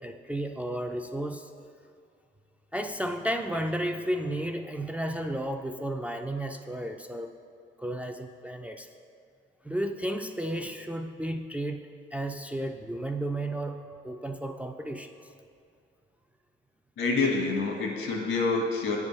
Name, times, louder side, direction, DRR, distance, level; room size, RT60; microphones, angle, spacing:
voice 1, 0.0-1.5 2.7-7.3 7.8-8.9 9.6-15.1, right 1 dB, 5° right, 4 dB, 0.3 m, -33 dB
voice 2, 17.0-19.0, left 3 dB, 80° left, 0 dB, 1.3 m, -27 dB
8.3 x 3.5 x 5.3 m, 2.4 s
cardioid pair, 90°, 20 cm